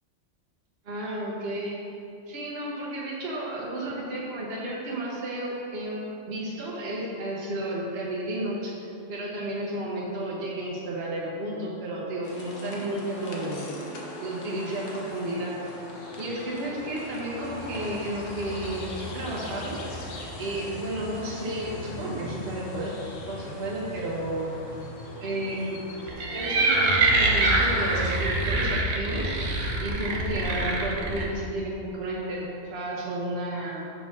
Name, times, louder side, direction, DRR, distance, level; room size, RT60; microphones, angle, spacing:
voice 1, 0.9-1.8 2.3-8.7 9.1-13.7 14.2-15.5 16.2-19.8 20.4-22.9 23.3-24.5 25.2-25.8 26.3-29.3 29.8-33.8, right 1 dB, 55° right, -5 dB, 1.2 m, -32 dB
sound 1, 12.2-28.2, left 1 dB, 85° left, 1.3 m, -40 dB
sound 2, 26.1-31.2, right 2 dB, 80° right, 1.2 m, -24 dB
5.7 x 4.4 x 5.9 m, 2.7 s
omnidirectional pair, 1.3 m